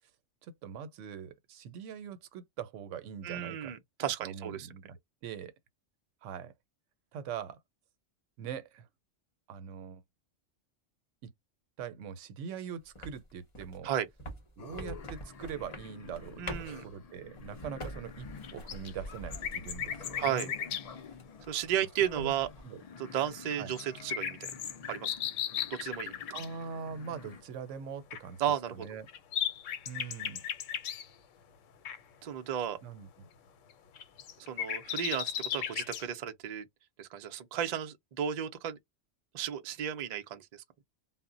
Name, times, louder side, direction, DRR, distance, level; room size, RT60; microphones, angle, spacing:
voice 1, 0.4-3.7 4.2-5.0 5.2-5.5 6.2-6.5 7.1-7.6 8.4-8.9 9.5-10.0 11.2-11.3 11.8-13.9 14.6-20.5 22.1-22.3 22.6-22.8 23.6-23.7 26.3-28.4 28.7-29.1 29.9-30.4 32.8-33.1, right 7 dB, 80° right, 0.9 m, -42 dB
voice 2, 3.2-4.7 13.8-14.1 16.4-16.8 20.2-20.5 21.5-22.5 23.0-24.5 24.9-25.2 25.7-26.1 28.4-28.9 32.2-32.8 34.4-36.7 37.0-38.8 39.3-40.6, right 10 dB, 65° right, 0.4 m, -34 dB
sound 1, 13.0-20.5 20.9-21.7 22.0-22.6, equal, 30° left, 0.7 m, -45 dB
sound 2, 14.6-27.4, left 5 dB, 65° left, 0.4 m, -50 dB
sound 3, 18.4-20.9 23.5-26.5 28.1-28.2 28.8-31.1 31.9-32.0 33.7-36.1, left 9 dB, 85° left, 1.0 m, -36 dB
2.1 x 2.0 x 3.6 m
omnidirectional pair, 1.3 m